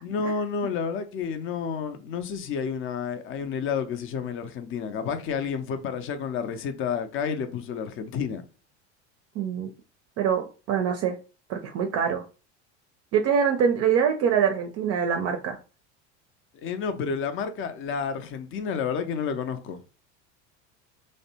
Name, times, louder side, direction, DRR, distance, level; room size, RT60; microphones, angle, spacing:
voice 1, 0.0-8.4 16.6-19.8, left 6 dB, 35° left, 0.5 m, -30 dB
voice 2, 9.4-9.7 10.2-11.2 11.5-12.2 13.1-15.6, right 7 dB, 45° right, 0.4 m, -24 dB
2.6 x 2.1 x 2.8 m
hypercardioid pair, 85°, 35 cm